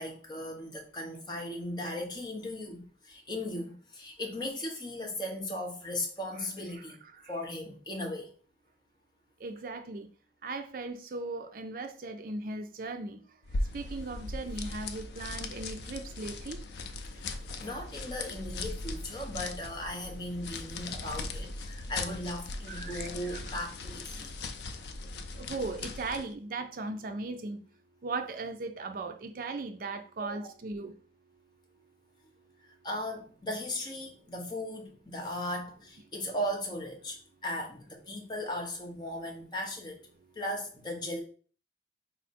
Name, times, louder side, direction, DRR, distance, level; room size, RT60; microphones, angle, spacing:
voice 1, 0.0-7.0 7.3-8.3 17.1-17.3 17.6-24.3 30.3-30.5 32.6-40.0 40.3-41.2, left 1 dB, 25° left, 0 dB, 0.8 m, -37 dB
voice 2, 9.4-10.1 10.4-13.2 13.7-16.6 22.7-23.4 25.3-27.6 28.0-30.9, right 3 dB, 50° right, 6 dB, 0.4 m, -38 dB
sound 1, 13.4-26.3, left 3 dB, 65° left, 0.5 m, -39 dB
4.7 x 2.1 x 4.1 m, 0.42 s
head